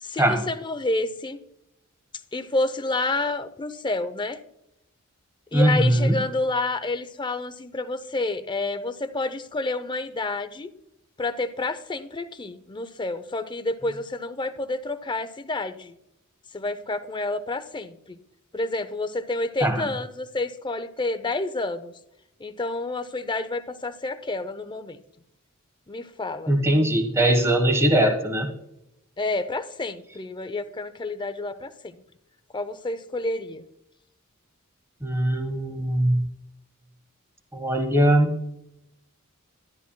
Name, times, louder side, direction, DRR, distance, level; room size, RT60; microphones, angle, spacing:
voice 1, 0.0-1.4 2.3-4.4 5.5-10.7 11.2-15.9 16.5-18.2 18.5-21.9 22.4-25.0 25.9-26.5 29.2-32.0 32.5-33.6, left 2 dB, 20° left, 11 dB, 0.6 m, -29 dB
voice 2, 5.5-6.2 19.6-19.9 26.5-28.5 35.0-36.2 37.5-38.3, right 1 dB, 10° right, 5 dB, 1.3 m, -21 dB
13.0 x 10.5 x 2.2 m, 0.83 s
head